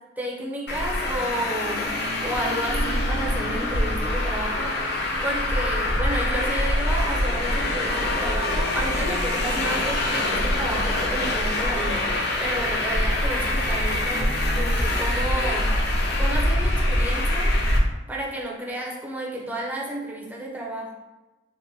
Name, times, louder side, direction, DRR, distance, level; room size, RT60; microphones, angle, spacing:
voice 1, 0.2-1.9 2.2-15.8 16.2-17.5 18.1-20.9, right 1 dB, 10° right, -3 dB, 0.4 m, -32 dB
Traffic noise roadway noise, 0.7-17.8, left 1 dB, 60° left, 0.4 m, -24 dB
2.9 x 2.1 x 2.6 m, 1.1 s
head